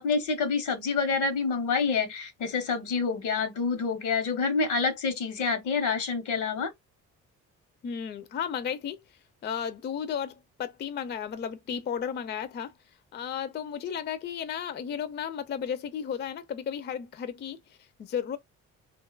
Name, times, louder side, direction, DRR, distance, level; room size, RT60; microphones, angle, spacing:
voice 1, 0.0-6.7, left 5 dB, 80° left, 0.9 m, -27 dB
voice 2, 7.8-9.0 9.4-12.7 13.1-18.4, left 8 dB, 35° left, 0.4 m, -34 dB
2.7 x 2.2 x 2.3 m
cardioid pair, 90°, 30 cm